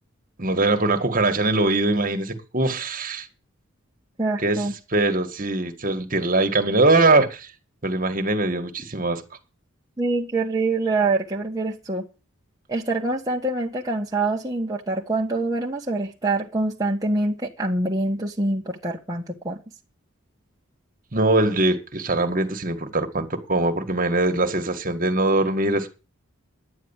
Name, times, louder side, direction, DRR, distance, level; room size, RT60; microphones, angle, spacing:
voice 1, 0.4-3.3 4.4-4.6 4.9-7.5 7.8-9.2 21.1-25.9, right 2 dB, 40° right, 1.9 m, -22 dB
voice 2, 4.2-4.7 10.0-12.1 12.7-19.6, right 2 dB, 15° right, 1.5 m, -25 dB
11.0 x 9.6 x 7.3 m
head